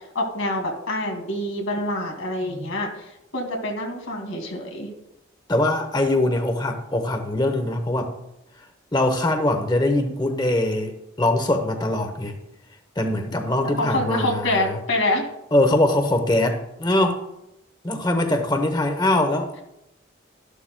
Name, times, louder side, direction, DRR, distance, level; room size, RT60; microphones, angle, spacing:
voice 1, 0.1-4.9 13.6-15.3, left 1 dB, 80° left, 2 dB, 2.3 m, -26 dB
voice 2, 5.5-8.1 8.9-12.4 13.0-14.8 15.5-17.2 17.8-19.5, left 1 dB, 20° left, 7 dB, 0.8 m, -22 dB
13.0 x 11.5 x 2.2 m, 0.86 s
head